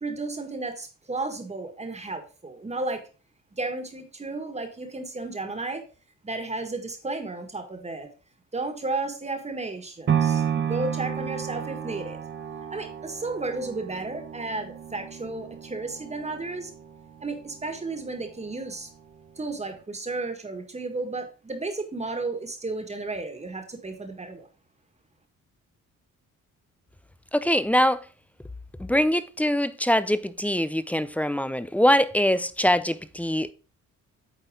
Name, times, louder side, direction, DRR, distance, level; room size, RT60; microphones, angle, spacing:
voice 1, 0.0-3.0 3.5-5.8 6.2-8.1 8.5-12.2 12.7-16.7 17.2-18.9 19.4-24.5, right 3 dB, 20° right, 1.7 m, -33 dB
sound 1, 10.1-18.2 18.7-18.8, right 8 dB, 40° right, 0.9 m, -32 dB
voice 2, 27.3-28.0 28.8-33.5, equal, 5° left, 0.4 m, -23 dB
8.9 x 4.1 x 3.7 m
cardioid pair, 90°, 30 cm